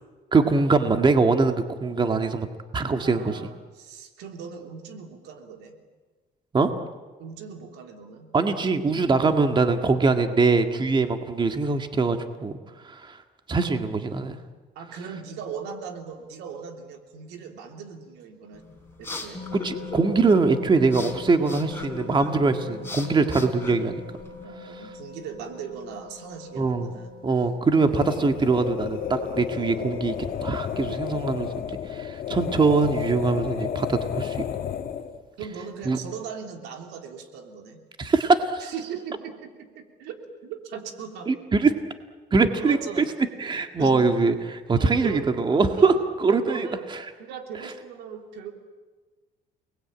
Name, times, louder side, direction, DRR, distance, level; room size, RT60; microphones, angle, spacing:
voice 1, 0.3-2.5 2.7-3.4 6.5-6.7 8.3-12.6 12.8-13.2 13.5-14.4 19.5-24.0 26.6-26.9 27.2-34.4 35.9-36.0 38.0-38.7 41.3-41.7 42.3-42.8 43.4-45.9 46.2-47.0, right 4 dB, 25° right, 6 dB, 1.9 m, -22 dB
voice 2, 3.0-5.8 7.2-8.3 14.8-18.6 19.0-19.4 24.4-27.1 35.4-37.8 38.6-41.3 42.6-43.1 43.8-44.0 44.7-45.3 45.7-46.9 47.2-48.5, right 6 dB, 85° right, 4 dB, 3.3 m, -39 dB
sound 1, 18.5-24.4, left 3 dB, 15° left, 4.4 m, -39 dB
sound 2, 19.3-29.9, left 5 dB, 30° left, 4.3 m, -42 dB
sound 3, 27.8-35.2, left 9 dB, 55° left, 1.7 m, -32 dB
29.5 x 20.5 x 8.9 m, 1.3 s
cardioid pair, 110°, 17 cm